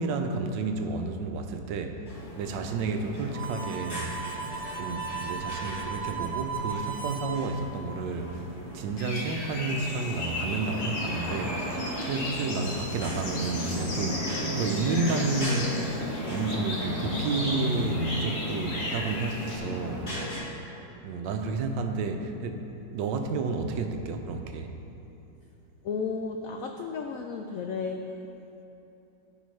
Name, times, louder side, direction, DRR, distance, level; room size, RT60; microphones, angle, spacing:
voice 1, 0.0-2.1 2.4-4.1 4.8-8.5 8.7-15.8 16.3-20.5 21.0-22.6 22.9-24.7, right 3 dB, 85° right, 5 dB, 1.3 m, -31 dB
sound 1, 2.0-20.4, equal, 35° left, 2.3 m, -35 dB
Harmonica, 3.3-7.4, right 5 dB, 55° right, 0.3 m, -36 dB
sound 2, 9.0-19.6, left 1 dB, 55° left, 1.7 m, -36 dB
voice 2, 25.8-28.1, left 5 dB, 80° left, 3 dB, 0.7 m, -33 dB
14.5 x 5.3 x 3.2 m, 2.9 s
omnidirectional pair, 2.0 m